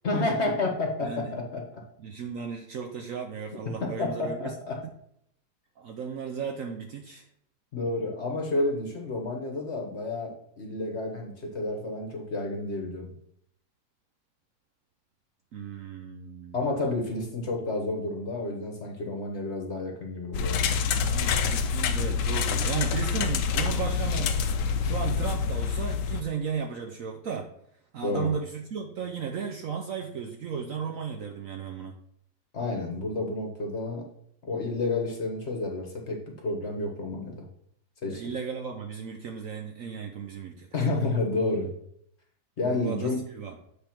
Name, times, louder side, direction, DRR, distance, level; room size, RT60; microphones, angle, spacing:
voice 1, 0.0-1.8 3.6-4.8 7.7-13.1 16.5-20.8 28.0-28.3 32.5-34.1 34.4-37.5 38.0-38.2 40.7-41.7 42.6-43.2, left 2 dB, 40° left, 1 dB, 1.2 m, -30 dB
voice 2, 1.0-1.3 2.0-4.5 5.8-7.3 15.5-16.6 20.9-24.4 24.8-27.5 27.9-31.9 38.1-40.7 42.7-43.6, right 6 dB, 70° right, 4 dB, 0.7 m, -35 dB
sound 1, 20.3-26.2, left 6 dB, 70° left, 1.1 m, -27 dB
8.0 x 3.5 x 5.8 m, 0.69 s
omnidirectional pair, 2.1 m